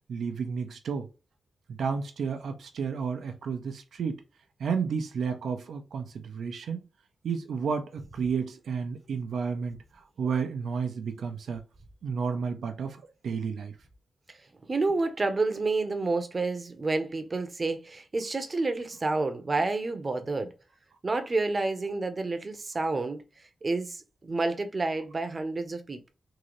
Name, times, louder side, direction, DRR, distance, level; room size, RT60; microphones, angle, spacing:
voice 1, 0.1-1.1 1.7-4.2 4.6-6.8 7.2-11.6 12.0-13.7, right 6 dB, 85° right, 0.6 m, -32 dB
voice 2, 14.7-20.5 21.0-23.2 23.6-26.1, right 3 dB, 35° right, 0.8 m, -29 dB
3.8 x 2.7 x 3.1 m
wide cardioid pair, 100°, 0 cm